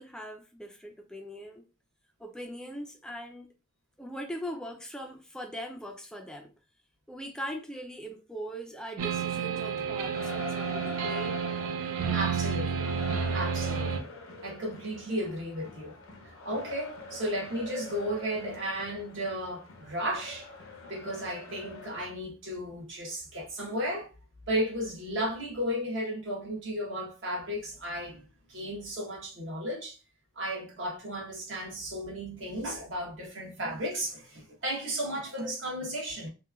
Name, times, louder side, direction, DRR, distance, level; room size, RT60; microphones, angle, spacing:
voice 1, 0.0-1.6 2.2-3.5 4.0-6.5 7.1-11.4, equal, 5° left, 0.3 m, -40 dB
sound 1, 9.0-14.0, right 6 dB, 85° right, 0.4 m, -30 dB
sound 2, 10.1-22.1, left 3 dB, 70° left, 0.6 m, -45 dB
voice 2, 12.1-12.9 13.3-14.1 14.4-15.9 16.2-20.5 20.9-24.1 24.5-28.2 28.5-30.0 30.4-36.3, equal, 60° right, 1.0 m, -34 dB
3.0 x 2.2 x 2.3 m
head